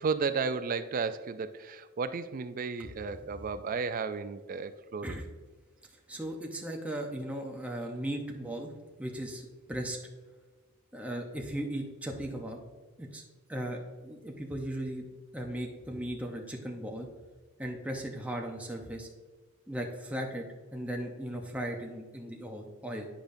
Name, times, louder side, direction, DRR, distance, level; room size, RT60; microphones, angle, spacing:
voice 1, 0.0-5.1, right 5 dB, 40° right, 12 dB, 0.3 m, -33 dB
voice 2, 2.8-3.3 5.0-5.3 6.1-8.7 9.0-10.0 10.9-12.6 13.0-13.2 13.5-15.1 15.3-17.1 17.6-19.1 19.7-20.5 20.7-23.1, right 1 dB, 5° right, 0 dB, 0.7 m, -37 dB
10.0 x 5.1 x 2.6 m, 1.4 s
head